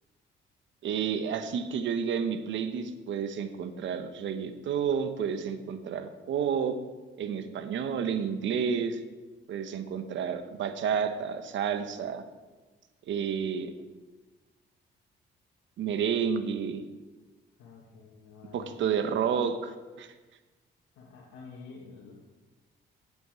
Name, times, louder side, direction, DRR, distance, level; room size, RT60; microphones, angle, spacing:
voice 1, 0.8-6.8 7.2-9.0 9.5-12.2 13.1-13.7 15.8-16.9 18.5-20.1, right 7 dB, 70° right, 9 dB, 1.1 m, -30 dB
voice 2, 17.6-18.7 21.0-22.1, left 4 dB, 90° left, -3 dB, 1.9 m, -49 dB
8.4 x 8.4 x 8.1 m, 1.2 s
cardioid pair, 90°, 20 cm